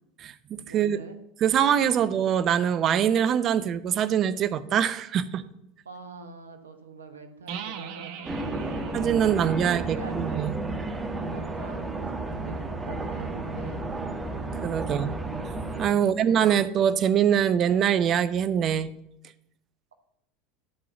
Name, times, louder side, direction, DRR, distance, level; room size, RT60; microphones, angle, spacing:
voice 1, 0.7-1.2 5.8-8.3 8.7-8.9 9.6-10.5 11.3-12.0 12.4-13.8 15.9-16.5, right 3 dB, 85° right, 7 dB, 1.0 m, -45 dB
voice 2, 1.4-5.4 7.5-7.6 8.9-10.5 14.6-15.1 15.8-18.9, right 9 dB, 45° right, 15 dB, 0.6 m, -23 dB
sound 1, 7.5-11.1, right 8 dB, 60° right, 0.9 m, -42 dB
sound 2, 8.2-15.9, right 2 dB, 20° right, 1.3 m, -32 dB
11.0 x 4.0 x 6.9 m, 0.78 s
hypercardioid pair, 80°, 0 cm